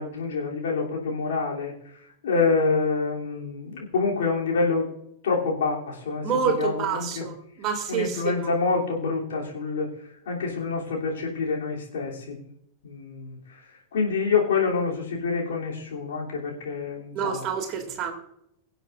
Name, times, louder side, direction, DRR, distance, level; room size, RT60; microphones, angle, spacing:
voice 1, 0.0-1.7 2.2-4.9 5.2-7.3 7.9-9.9 10.3-12.4 12.8-13.4 13.9-17.4, left 4 dB, 60° left, -2 dB, 3.1 m, -26 dB
voice 2, 6.2-8.5 17.1-18.1, right 6 dB, 35° right, 3 dB, 2.5 m, -28 dB
23.5 x 8.0 x 2.6 m, 0.72 s
figure-of-eight pair, 90°, 0 cm